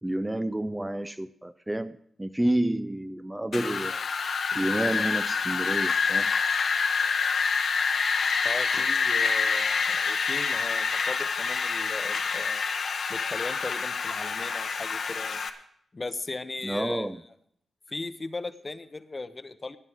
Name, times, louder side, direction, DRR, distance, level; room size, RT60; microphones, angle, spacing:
voice 1, 0.0-4.0 4.5-6.3 8.6-8.9 16.6-17.2, right 1 dB, 10° right, 12 dB, 0.4 m, -30 dB
Wind, 3.5-15.5, left 5 dB, 65° left, 1.0 m, -27 dB
voice 2, 8.4-12.6 13.1-15.4 15.9-17.1 17.9-19.8, left 3 dB, 30° left, 12 dB, 0.8 m, -37 dB
18.0 x 10.0 x 3.5 m, 0.68 s
cardioid pair, 80°, 0 cm